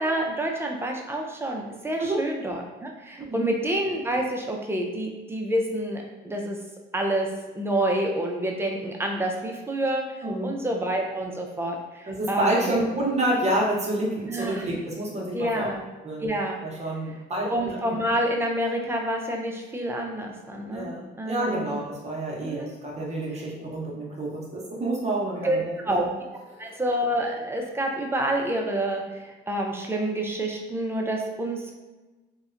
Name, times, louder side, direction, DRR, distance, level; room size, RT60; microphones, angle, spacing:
voice 1, 0.0-6.6 6.9-7.3 7.5-10.0 10.4-12.8 14.3-14.7 15.3-15.8 16.2-16.6 17.5-21.8 22.4-22.7 25.4-25.6 25.8-26.1 26.6-31.7, right 1 dB, 10° right, 1 dB, 0.4 m, -28 dB
voice 2, 10.2-10.6 12.1-15.7 16.0-16.3 16.6-18.0 20.7-26.1 26.5-26.8, right 1 dB, 35° right, -3 dB, 0.7 m, -28 dB
2.8 x 2.1 x 2.4 m, 1.2 s
cardioid pair, 90°, 20 cm